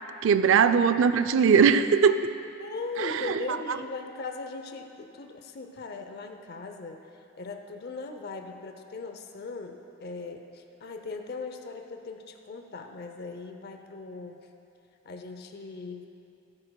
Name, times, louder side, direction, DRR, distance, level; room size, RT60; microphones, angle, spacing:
voice 1, 0.2-2.2 3.0-3.3, right 6 dB, 70° right, 11 dB, 0.4 m, -20 dB
voice 2, 2.6-7.1 7.4-14.4 15.0-16.1, left 4 dB, 55° left, 5 dB, 0.6 m, -39 dB
17.0 x 9.8 x 2.3 m, 2.8 s
head